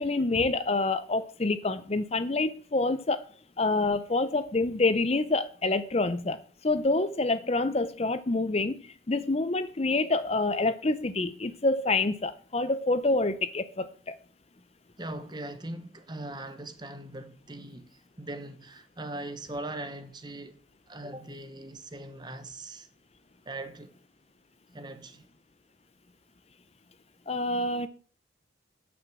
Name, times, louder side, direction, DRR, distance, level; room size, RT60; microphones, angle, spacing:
voice 1, 0.0-3.3 3.6-14.1 27.3-27.9, left 2 dB, 30° left, 0.6 m, -27 dB
voice 2, 15.0-22.9 23.4-23.9 24.7-25.3, right 2 dB, 20° right, 1.1 m, -40 dB
9.6 x 6.1 x 7.5 m
head